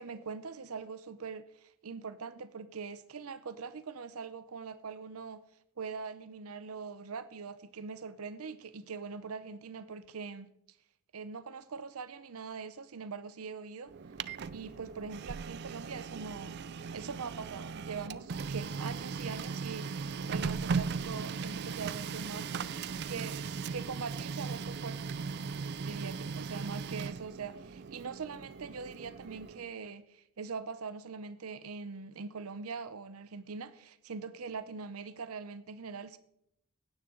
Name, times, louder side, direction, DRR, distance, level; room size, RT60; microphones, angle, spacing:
voice 1, 0.0-5.4 5.8-10.5 11.1-13.9 14.5-16.5 16.9-22.5 23.1-25.0 25.8-36.2, right 5 dB, 85° right, 12 dB, 0.7 m, -42 dB
Printer, 13.9-29.7, right 5 dB, 50° right, 0.4 m, -38 dB
16.0 x 9.7 x 3.8 m, 0.73 s
head